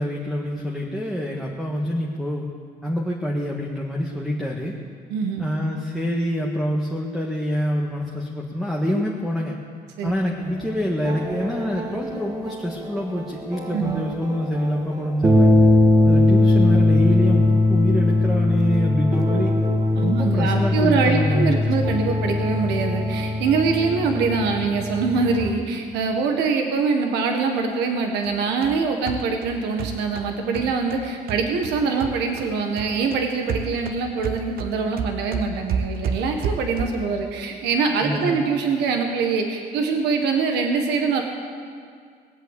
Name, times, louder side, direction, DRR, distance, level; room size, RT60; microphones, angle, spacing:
voice 1, 0.0-2.5 2.8-4.8 5.4-9.6 10.0-15.5 16.1-19.6 20.0-21.6 38.0-38.4, equal, ahead, -2 dB, 1.7 m, -26 dB
voice 2, 5.1-5.5 10.0-10.1 13.7-14.0 19.9-41.2, right 4 dB, 85° right, 4 dB, 1.6 m, -23 dB
sound 1, 10.6-25.5, left 2 dB, 20° right, 1.6 m, -20 dB
sound 2, 28.2-32.5 32.8-37.1, right 6 dB, 60° right, 1.1 m, -31 dB
19.5 x 8.0 x 8.3 m, 2.1 s
cardioid pair, 110°, 17 cm